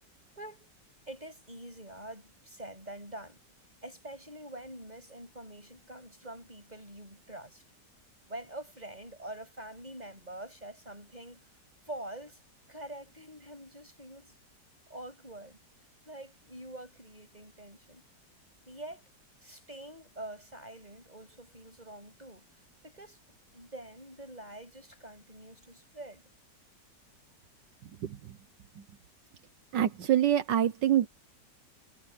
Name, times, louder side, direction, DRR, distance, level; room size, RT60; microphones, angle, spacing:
voice 1, 0.4-0.7 1.1-3.4 3.8-7.6 8.2-11.4 11.8-12.4 12.7-14.3 14.9-15.6 16.1-18.0 18.7-19.1 19.4-23.2 23.5-26.2, right 1 dB, 20° right, 7.6 m, -45 dB
voice 2, 29.7-31.1, right 11 dB, 80° right, 1.7 m, -25 dB
omnidirectional pair, 1.9 m